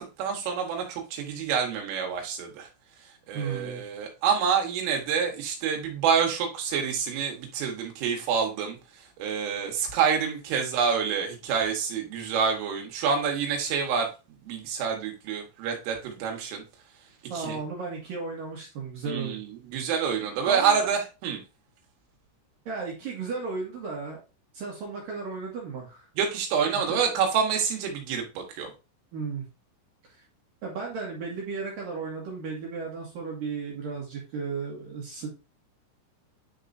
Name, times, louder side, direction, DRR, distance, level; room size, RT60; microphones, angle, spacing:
voice 1, 0.0-2.7 3.3-8.8 9.2-14.1 14.4-16.6 17.4-17.6 19.1-21.4 26.2-28.7, right 6 dB, 75° right, 2 dB, 3.8 m, -27 dB
voice 2, 3.3-3.8 17.3-19.4 20.5-20.9 22.7-24.2 24.5-26.1 26.9-27.0 29.1-29.5 30.1-30.2 30.6-35.4, right 4 dB, 60° right, -2 dB, 2.6 m, -34 dB
10.0 x 4.7 x 2.6 m, 0.30 s
omnidirectional pair, 6.0 m